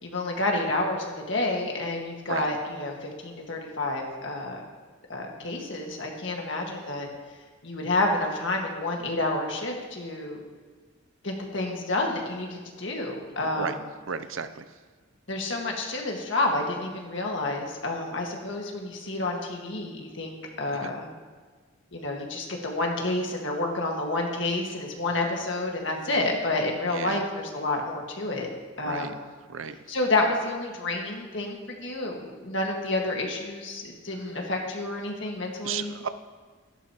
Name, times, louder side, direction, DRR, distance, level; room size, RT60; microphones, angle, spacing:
voice 1, 0.0-4.6 5.1-7.1 7.6-10.4 11.2-13.7 15.3-21.1 21.9-28.5 28.8-29.2 29.9-35.9, left 2 dB, 65° left, 0 dB, 1.8 m, -29 dB
voice 2, 13.4-13.8 14.1-14.6 20.6-20.9 26.9-27.2 28.8-29.1 29.5-29.8 35.6-36.1, right 6 dB, 85° right, 12 dB, 0.6 m, -33 dB
12.0 x 12.0 x 3.0 m, 1.5 s
head